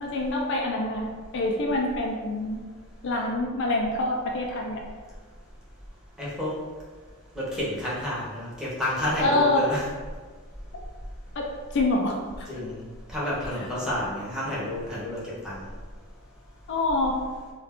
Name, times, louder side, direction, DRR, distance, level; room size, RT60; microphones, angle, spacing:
voice 1, 0.0-2.6 3.0-4.8 9.2-9.6 11.4-11.5 11.7-12.5 16.7-17.2, left 2 dB, 55° left, 0 dB, 0.4 m, -26 dB
voice 2, 6.2-6.5 7.3-9.9 12.5-12.8 13.1-15.6, left 1 dB, 5° right, -8 dB, 0.7 m, -30 dB
2.4 x 2.2 x 3.5 m, 1.4 s
head